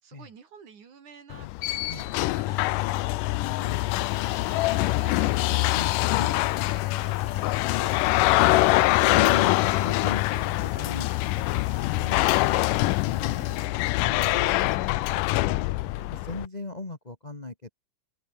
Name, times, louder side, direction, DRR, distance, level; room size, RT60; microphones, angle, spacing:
voice 1, 0.0-3.2 4.5-5.7 6.6-7.8, right 6 dB, 60° right, 4.7 m, -50 dB
sound 1, 1.3-16.5, left 19 dB, 80° left, 2.2 m, -24 dB
voice 2, 3.4-3.8 5.7-7.4 8.8-12.2 15.8-17.7, left 2 dB, 20° left, 1.2 m, -40 dB
sound 2, 3.8-13.7, right 6 dB, 85° right, 6.8 m, -55 dB
omnidirectional pair, 3.9 m